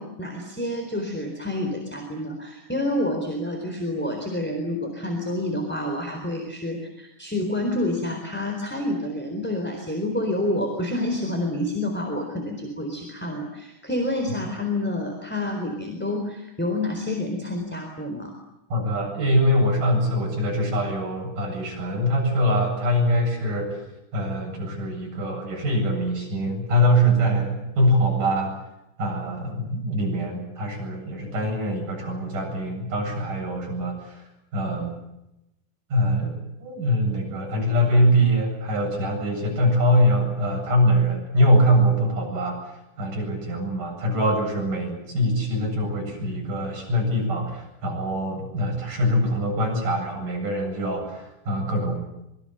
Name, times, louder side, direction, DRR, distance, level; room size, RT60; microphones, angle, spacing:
voice 1, 0.0-18.3, left 1 dB, 5° left, 3 dB, 3.4 m, -28 dB
voice 2, 18.7-23.8 24.1-28.6 29.0-35.0 35.9-52.0, equal, 50° right, 1 dB, 9.6 m, -23 dB
26.0 x 24.0 x 8.0 m, 0.89 s
omnidirectional pair, 4.9 m